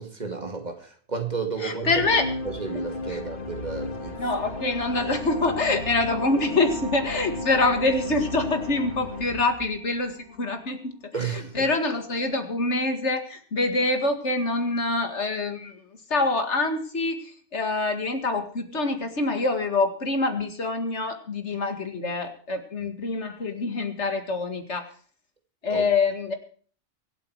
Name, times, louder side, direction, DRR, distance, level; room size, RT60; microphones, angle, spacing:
voice 1, 0.0-1.9 2.4-4.2 11.1-11.7 25.7-25.9, right 5 dB, 35° right, 2.3 m, -32 dB
voice 2, 1.6-2.3 3.1-3.2 4.2-24.9 25.6-26.3, left 3 dB, 75° left, 2.4 m, -26 dB
sound 1, 1.8-10.3, left 2 dB, 50° left, 1.7 m, -35 dB
sound 2, 3.8-11.0, equal, 70° right, 2.3 m, -42 dB
24.5 x 8.4 x 4.8 m
omnidirectional pair, 1.2 m